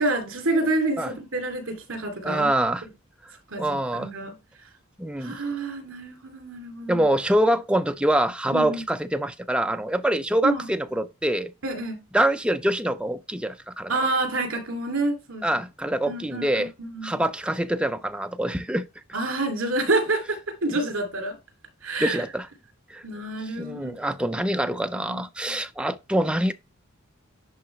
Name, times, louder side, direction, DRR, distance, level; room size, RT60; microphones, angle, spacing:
voice 1, 0.0-2.5 3.5-4.3 5.2-7.1 8.5-8.8 10.4-10.7 11.6-12.0 13.9-15.5 15.9-17.2 19.1-21.3 21.8-22.2 23.0-24.1 24.6-24.7 25.0-25.6, right 2 dB, 65° right, 2.5 m, -28 dB
voice 2, 2.2-2.8 3.6-4.1 5.0-5.4 6.9-11.5 12.1-13.9 15.4-16.7 17.0-18.9 22.0-22.5 22.9-23.0 23.6-26.5, right 1 dB, 5° right, 0.4 m, -25 dB
10.5 x 3.8 x 3.1 m
head